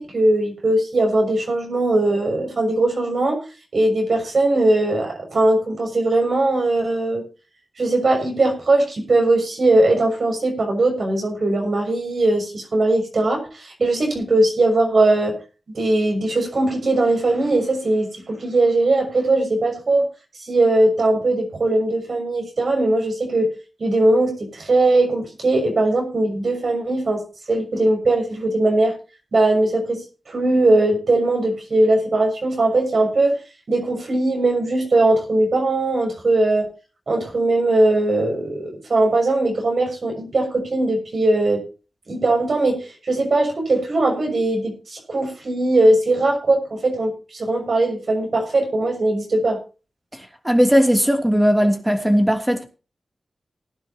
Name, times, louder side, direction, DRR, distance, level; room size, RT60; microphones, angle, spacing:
voice 1, 0.0-3.4 3.7-7.2 7.8-15.4 15.7-20.1 20.5-23.5 23.8-27.2 27.5-29.0 29.3-33.4 33.7-36.7 37.1-41.6 42.1-49.6, right 2 dB, 65° right, 6.3 m, -20 dB
voice 2, 50.1-52.7, equal, 10° right, 2.9 m, -18 dB
19.5 x 11.0 x 2.9 m
cardioid pair, 60°, 0 cm